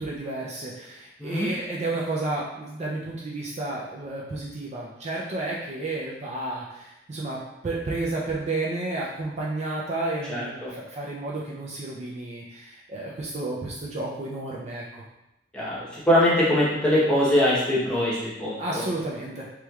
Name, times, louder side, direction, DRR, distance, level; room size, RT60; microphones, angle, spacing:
voice 1, 0.0-15.0 18.6-19.5, right 2 dB, 35° right, -4 dB, 0.4 m, -31 dB
voice 2, 16.1-18.6, left 1 dB, 5° left, -8 dB, 0.9 m, -22 dB
3.1 x 3.1 x 2.3 m, 0.92 s
head